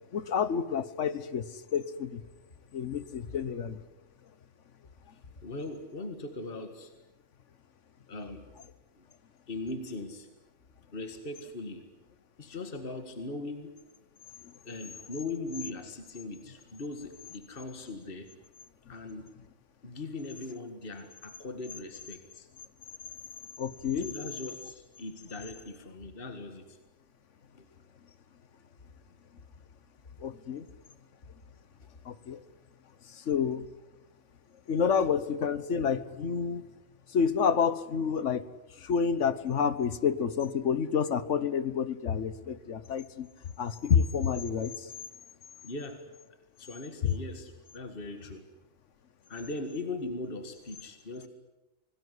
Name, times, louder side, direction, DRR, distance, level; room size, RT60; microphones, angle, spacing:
voice 1, 0.1-2.2 2.7-3.8 14.4-14.5 23.6-24.1 30.2-30.7 32.0-32.4 33.0-33.7 34.7-36.6 37.1-38.4 38.8-43.3 43.6-44.9 47.0-47.1, left 7 dB, 70° left, 15 dB, 1.5 m, -29 dB
voice 2, 5.1-6.9 8.1-8.5 9.0-9.1 9.5-10.3 10.9-11.9 12.4-13.7 14.6-18.3 18.9-19.3 19.8-22.5 23.9-26.8 27.5-27.7 31.8-32.0 32.3-32.4 45.6-46.0 46.6-48.4 49.3-51.3, left 2 dB, 45° left, 7 dB, 2.1 m, -40 dB
26.0 x 19.5 x 9.9 m, 1.0 s
omnidirectional pair, 1.3 m